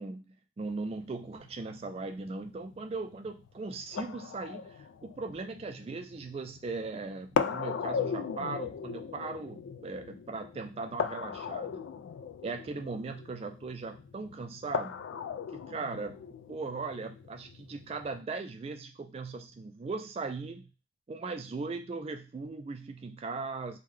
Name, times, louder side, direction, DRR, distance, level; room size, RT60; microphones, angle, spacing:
voice 1, 0.0-11.8 12.4-15.0 15.5-20.7 21.1-23.8, right 3 dB, 30° right, 6 dB, 0.3 m, -39 dB
sound 1, 0.6-18.2, left 6 dB, 85° left, 0.3 m, -38 dB
5.3 x 2.2 x 3.2 m, 0.32 s
head